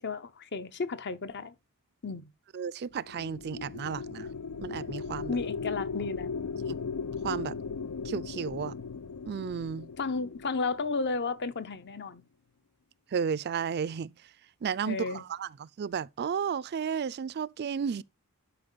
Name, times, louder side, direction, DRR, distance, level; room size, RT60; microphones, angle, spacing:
voice 1, 0.0-1.5 2.0-2.3 5.3-6.3 10.0-12.2 14.8-15.2, left 4 dB, 50° left, 0.8 m, -33 dB
voice 2, 2.5-4.3 4.6-5.4 6.6-6.8 7.2-7.5 8.0-8.7 9.3-9.9 13.1-14.1 14.6-18.0, right 7 dB, 50° right, 0.4 m, -33 dB
sound 1, 2.9-11.4, left 5 dB, 75° left, 0.5 m, -37 dB
11.5 x 5.3 x 3.9 m
head